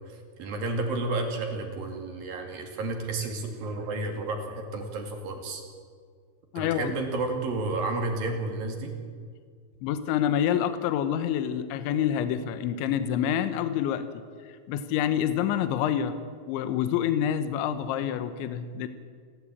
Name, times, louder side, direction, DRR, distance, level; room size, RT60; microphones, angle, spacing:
voice 1, 0.1-5.6 6.6-8.9, right 2 dB, 55° right, 3 dB, 3.8 m, -31 dB
voice 2, 6.5-6.9 9.8-14.1 14.5-16.2 16.5-18.9, left 9 dB, 80° left, 11 dB, 3.3 m, -27 dB
29.0 x 12.5 x 8.5 m, 2.1 s
omnidirectional pair, 5.3 m